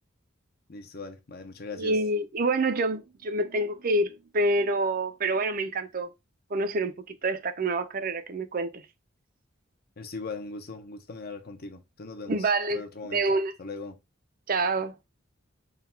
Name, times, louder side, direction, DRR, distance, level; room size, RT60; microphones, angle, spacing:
voice 1, 0.7-2.0 10.0-14.0, left 3 dB, 50° left, 0.8 m, -40 dB
voice 2, 1.8-6.1 6.5-8.8 12.3-12.8 13.1-13.5 14.5-14.9, right 2 dB, 45° right, 0.5 m, -27 dB
3.8 x 2.4 x 4.3 m
head